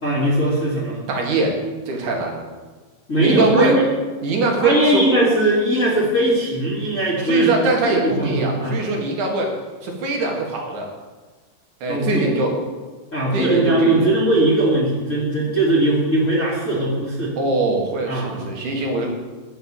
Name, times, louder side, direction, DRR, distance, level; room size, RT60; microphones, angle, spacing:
voice 1, 0.0-1.0 3.1-3.8 4.6-8.8 11.9-12.3 13.1-17.3 18.1-18.5, right 1 dB, 25° left, -7 dB, 2.5 m, -19 dB
voice 2, 1.1-1.6 1.9-2.4 3.2-3.8 4.2-5.0 7.2-9.5 9.8-10.9 11.8-12.5 13.3-14.1 17.4-19.1, right 3 dB, 65° right, 0 dB, 3.2 m, -22 dB
10.0 x 7.5 x 7.2 m, 1.3 s
omnidirectional pair, 3.8 m